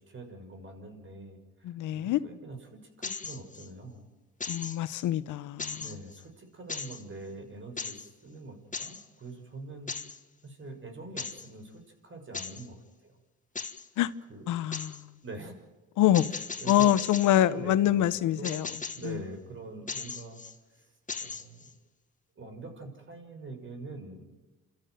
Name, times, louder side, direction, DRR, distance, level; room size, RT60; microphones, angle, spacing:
voice 1, 0.0-2.6 3.0-4.1 5.7-9.9 10.4-13.2 14.3-14.7 15.2-15.6 16.3-16.9 17.3-18.1 18.4-20.4 20.7-20.9 21.2-21.7 22.4-24.3, right 2 dB, 40° right, 6.2 m, -44 dB
voice 2, 1.6-2.2 4.5-5.8 14.0-14.1 14.5-15.1 16.0-16.3 16.7-18.7 19.0-19.2, left 12 dB, 85° left, 1.0 m, -25 dB
sound 1, 3.0-3.7 4.4-5.1 5.6-6.2 6.7-7.0 7.8-8.1 8.7-9.0 9.9-10.2 11.2-11.5 12.3-12.7 13.6-13.9 14.7-15.0 16.1-17.4 18.4-19.1 19.9-20.6 21.1-21.7, left 5 dB, 25° left, 1.6 m, -38 dB
28.5 x 13.5 x 9.3 m
cardioid pair, 90°, 30 cm